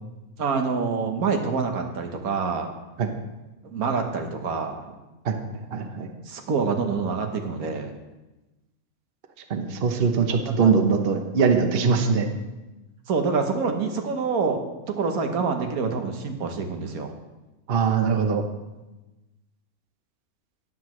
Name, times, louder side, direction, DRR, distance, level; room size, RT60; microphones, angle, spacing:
voice 1, 0.4-2.7 3.6-5.0 6.3-7.9 10.4-10.7 13.1-14.6 14.9-17.1, right 5 dB, 85° right, 4 dB, 1.5 m, -26 dB
voice 2, 5.7-6.1 9.5-12.3 17.7-18.4, right 5 dB, 45° right, 5 dB, 1.0 m, -22 dB
12.5 x 9.6 x 3.1 m, 1.1 s
omnidirectional pair, 1.5 m